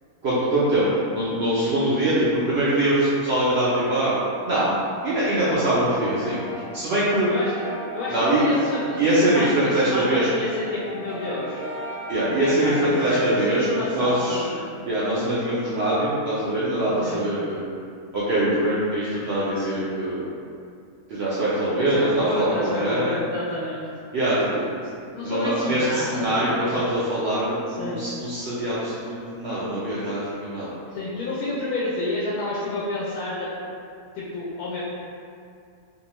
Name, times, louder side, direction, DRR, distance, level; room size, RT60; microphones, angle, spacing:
voice 1, 0.2-0.9 1.1-4.1 4.4-4.7 5.0-7.3 8.1-8.6 9.0-10.3 12.1-13.7 13.9-14.4 14.9-17.6 18.1-20.3 21.1-23.3 24.1-24.6 25.2-30.7, right 1 dB, 70° right, -9 dB, 0.6 m, -23 dB
Brass instrument, 6.0-9.5 9.9-13.5, equal, 5° left, 0.8 m, -35 dB
voice 2, 7.3-7.6 7.9-9.0 9.3-11.6 12.3-14.7 17.0-17.2 21.8-23.9 25.1-26.7 27.7-28.0 30.9-33.7 34.1-34.8, left 2 dB, 80° left, -7 dB, 1.1 m, -30 dB
2.7 x 2.3 x 2.9 m, 2.4 s
omnidirectional pair, 1.5 m